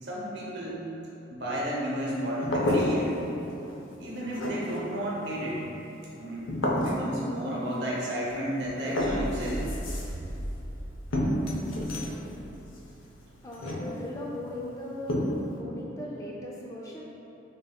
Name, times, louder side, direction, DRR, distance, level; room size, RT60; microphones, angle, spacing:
voice 1, 0.0-0.8 1.3-3.2 4.0-5.6 6.1-9.6, equal, 60° right, -5 dB, 0.9 m, -32 dB
sound 1, 2.4-3.3 3.6-4.1 4.3-4.9 6.5-7.2 8.3-8.4 8.6-10.3 11.1-12.2 13.5-14.2 15.1-15.6, left 1 dB, 85° left, 0.6 m, -29 dB
sound 2, 9.0-13.2, equal, 40° right, 0.4 m, -38 dB
voice 2, 11.1-15.3 15.6-17.0, left 1 dB, 15° left, -4 dB, 0.4 m, -40 dB
6.5 x 2.9 x 2.3 m, 3.0 s
head